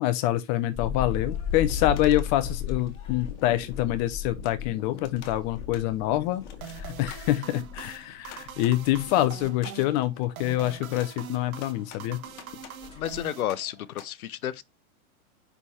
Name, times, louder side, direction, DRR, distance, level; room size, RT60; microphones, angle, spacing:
voice 1, 0.0-12.2, left 14 dB, 30° left, 0.5 m, -26 dB
sound 1, 0.7-7.9 8.2-9.1 9.4-9.5 9.9-10.0 12.1-12.2 12.5-12.6 12.7-13.3, left 7 dB, 10° left, 4.9 m, -35 dB
sound 2, 0.8-14.1, left 7 dB, 55° left, 1.7 m, -48 dB
sound 3, 6.6-14.0, right 8 dB, 70° right, 1.6 m, -43 dB
voice 2, 13.0-14.6, left 11 dB, 75° left, 0.8 m, -31 dB
6.8 x 5.6 x 2.8 m
hypercardioid pair, 115°, 44 cm